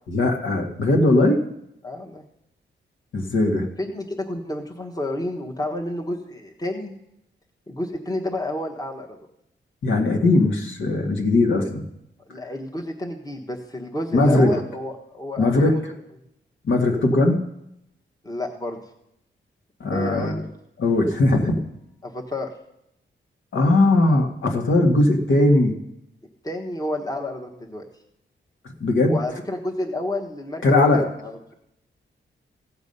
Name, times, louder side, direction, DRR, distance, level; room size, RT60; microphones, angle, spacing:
voice 1, 0.1-1.4 3.1-3.7 9.8-11.9 14.1-14.6 15.4-15.9 16.6-17.4 19.8-20.4 20.8-21.7 23.5-25.7 28.8-29.2 30.6-31.0, left 2 dB, 75° left, 2 dB, 1.7 m, -19 dB
voice 2, 1.8-2.2 3.8-6.9 7.7-9.2 12.3-15.8 18.2-18.8 19.9-20.5 22.0-22.5 26.4-27.9 29.1-30.6 30.9-31.5, left 1 dB, 20° left, 1 dB, 1.3 m, -30 dB
15.5 x 7.2 x 5.4 m, 0.81 s
wide cardioid pair, 100°, 20 cm